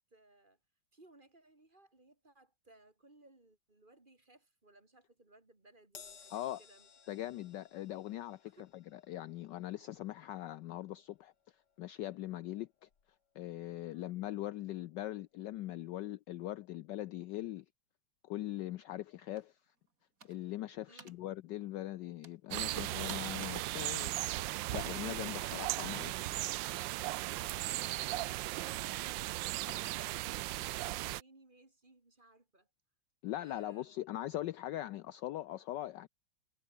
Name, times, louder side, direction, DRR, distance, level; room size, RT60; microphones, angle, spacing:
voice 1, 0.1-0.6 0.9-7.2 8.4-8.7 13.9-14.2 20.9-21.3 27.1-32.7 33.4-33.9, right 2 dB, 25° right, 2.8 m, -63 dB
Crash cymbal, 6.0-12.6 12.9-13.1 14.2-14.3, left 6 dB, 55° left, 2.5 m, -60 dB
voice 2, 7.1-11.3 11.8-12.7 13.3-17.6 18.2-19.6 20.2-24.1 24.7-26.4 33.2-36.1, left 14 dB, 70° left, 1.1 m, -41 dB
sound 1, 19.3-19.4 20.2-20.5 21.0-21.2 22.2-22.4 22.8-23.4 23.7-24.0 24.6-26.0 27.4-30.2, right 4 dB, 40° right, 2.9 m, -54 dB
sound 2, 22.5-31.2, right 17 dB, 75° right, 1.2 m, -37 dB
omnidirectional pair, 2.3 m